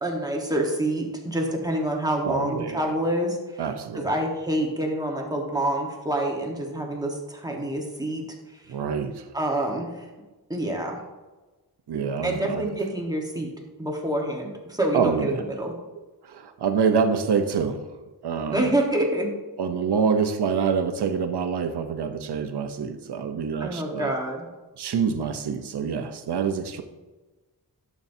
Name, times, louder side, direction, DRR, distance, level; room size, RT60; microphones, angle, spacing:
voice 1, 0.0-3.6 3.9-8.2 8.5-8.6 9.3-10.0 10.5-11.0 12.2-13.5 13.8-15.7 18.5-19.3 23.6-24.5, right 1 dB, 10° right, 0 dB, 1.2 m, -27 dB
voice 2, 2.2-2.9 3.6-4.1 8.7-9.2 11.9-12.7 14.9-15.4 16.2-17.8 18.2-18.7 19.6-24.1 24.8-26.8, right 6 dB, 85° right, 8 dB, 0.8 m, -26 dB
11.5 x 7.2 x 2.7 m, 1.2 s
wide cardioid pair, 145°, 39 cm